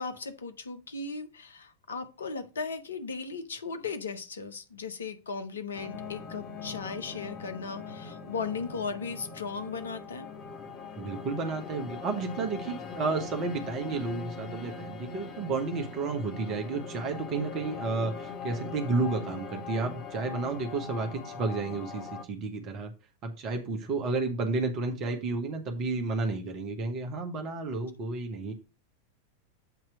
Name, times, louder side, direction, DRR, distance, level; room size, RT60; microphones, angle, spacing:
voice 1, 0.0-10.3, left 4 dB, 70° left, 0.9 m, -37 dB
sound 1, 5.7-22.2, left 4 dB, 35° left, 1.0 m, -41 dB
voice 2, 11.0-22.9 23.2-28.5, right 3 dB, 35° right, 1.1 m, -32 dB
8.0 x 3.0 x 6.2 m
figure-of-eight pair, 90°, 0 cm